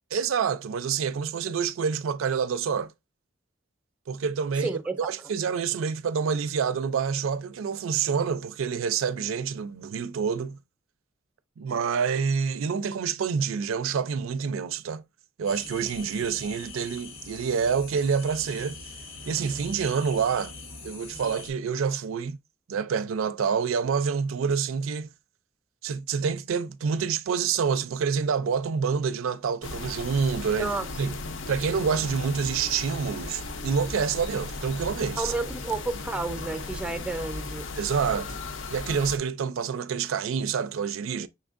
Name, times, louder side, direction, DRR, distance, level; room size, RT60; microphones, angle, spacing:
voice 1, 0.1-2.9 4.1-10.6 11.6-15.0 15.4-18.8 19.3-20.5 20.8-22.4 22.7-25.1 25.8-30.7 31.0-31.1 31.5-35.3 37.8-38.4 38.7-41.3, right 6 dB, 90° right, 0.4 m, -27 dB
voice 2, 4.6-5.1 30.6-30.9 35.2-37.7, right 2 dB, 5° right, 0.5 m, -31 dB
sound 1, 15.4-21.5, left 3 dB, 90° left, 1.4 m, -43 dB
sound 2, 29.6-39.2, left 3 dB, 70° left, 0.6 m, -36 dB
5.7 x 3.5 x 2.4 m
head